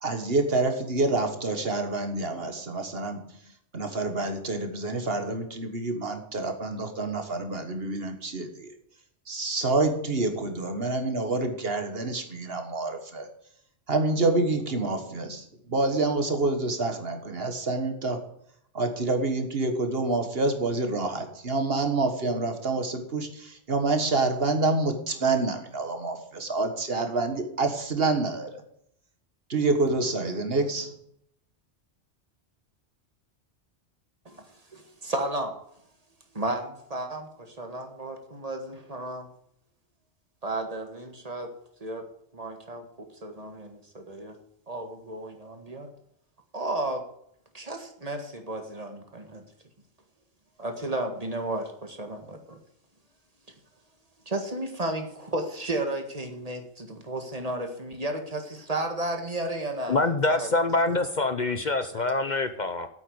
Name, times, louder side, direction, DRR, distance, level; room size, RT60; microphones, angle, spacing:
voice 1, 0.0-8.7 9.3-13.3 13.9-18.3 18.7-28.6 29.5-31.0, right 3 dB, 55° right, 1.7 m, -27 dB
voice 2, 34.3-35.6 36.3-39.3 40.4-41.5 41.8-42.1 42.3-44.4 44.7-45.9 46.5-47.0 47.5-49.4 50.6-52.6 54.3-60.5, right 1 dB, 30° right, 1.9 m, -33 dB
voice 3, 59.9-62.9, left 2 dB, 45° left, 0.9 m, -25 dB
9.0 x 8.4 x 7.9 m
omnidirectional pair, 1.2 m